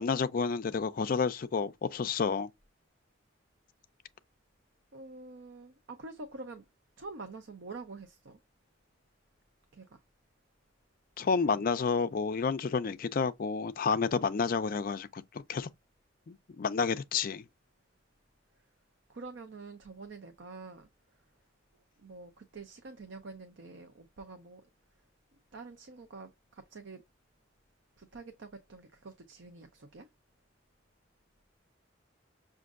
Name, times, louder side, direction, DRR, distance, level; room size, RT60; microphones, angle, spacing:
voice 1, 0.0-2.5 11.2-15.7 16.3-17.4, left 5 dB, 45° left, 0.4 m, -30 dB
voice 2, 4.9-6.6 7.0-8.4 9.7-10.0 11.4-11.6 19.1-20.9 22.0-24.6 25.5-27.0 28.0-30.1, right 3 dB, 65° right, 0.6 m, -47 dB
6.1 x 2.5 x 2.4 m
head